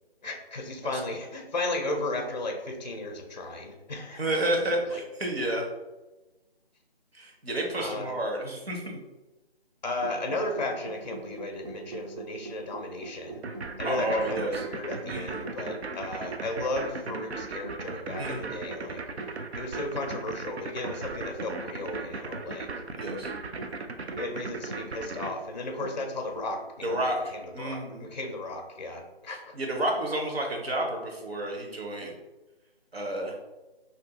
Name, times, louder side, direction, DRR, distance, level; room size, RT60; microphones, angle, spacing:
voice 1, 0.2-4.2 4.9-5.0 7.8-8.2 9.8-13.4 13.8-19.0 19.6-22.7 23.5-23.6 24.2-29.5, left 2 dB, 45° left, 4 dB, 0.4 m, -34 dB
voice 2, 4.2-5.7 7.1-9.0 13.8-14.6 15.0-15.5 18.2-18.6 22.9-23.3 26.8-28.1 29.5-32.1 32.9-33.3, right 1 dB, 70° right, 1 dB, 0.9 m, -30 dB
sound 1, 10.0-27.0, right 3 dB, 40° right, 0.6 m, -44 dB
sound 2, 13.4-25.3, right 3 dB, 85° right, 0.5 m, -37 dB
2.7 x 2.4 x 3.5 m, 1.1 s
figure-of-eight pair, 155°, 31 cm